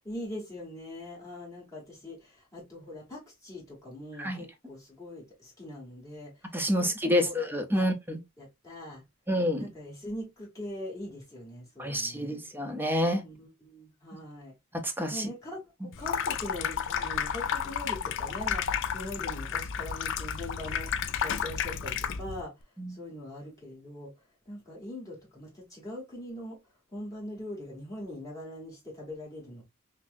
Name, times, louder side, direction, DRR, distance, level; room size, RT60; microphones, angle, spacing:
voice 1, 0.0-6.3 6.8-7.4 7.7-7.8 8.4-9.0 9.6-12.4 13.2-14.5 15.1-22.5 22.9-24.1 24.5-26.6 26.9-29.6, left 1 dB, 15° left, 1.3 m, -42 dB
voice 2, 6.5-8.2 9.3-9.7 11.8-13.2 14.8-15.3 15.8-15.9 22.8-23.0, equal, 10° right, 0.7 m, -28 dB
Water tap faucet / Sink (filling or washing), 15.9-22.4, left 7 dB, 60° left, 0.4 m, -32 dB
5.7 x 2.1 x 2.6 m
head